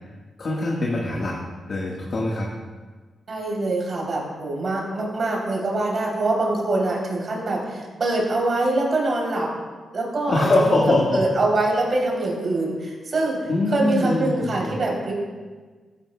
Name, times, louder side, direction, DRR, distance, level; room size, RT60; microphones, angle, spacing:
voice 1, 0.4-1.4 1.7-2.5 10.3-11.2 13.5-14.8, left 2 dB, 55° left, -4 dB, 1.5 m, -22 dB
voice 2, 3.3-9.5 9.9-10.8 11.1-13.4 13.7-15.1, right 2 dB, 50° right, -2 dB, 3.2 m, -24 dB
14.0 x 10.0 x 2.3 m, 1.4 s
cardioid pair, 75°, 0 cm